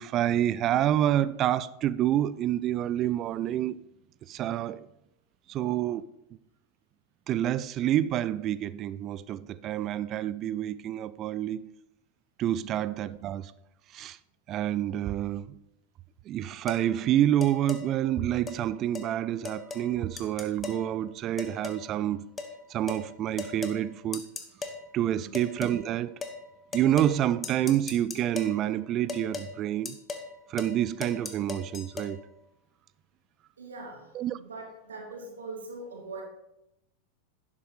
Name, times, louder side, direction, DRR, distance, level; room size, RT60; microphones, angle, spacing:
voice 1, 0.0-3.8 4.3-4.9 5.5-6.1 7.3-11.6 12.4-13.5 13.9-14.2 14.5-15.6 16.3-22.3 22.7-24.2 24.9-26.2 26.7-30.0 30.5-32.2 34.1-34.4, right 11 dB, 35° right, 0.4 m, -28 dB
sound 1, 16.7-16.9 17.4-17.8 18.5-18.6 19.0-19.1 19.5-19.9 20.2-20.8 21.4-21.9 22.4-22.5 22.9-23.1 23.4-23.8 24.1-24.8 25.3-25.8 26.2-26.4 26.7-27.2 27.4-28.6 29.1-29.5 29.9-30.3 30.6-30.8 31.0-32.1, left 4 dB, 20° left, 1.1 m, -37 dB
voice 2, 25.0-25.3 33.6-36.2, right 3 dB, 70° right, 2.3 m, -43 dB
11.0 x 7.3 x 4.0 m
figure-of-eight pair, 90°, 0 cm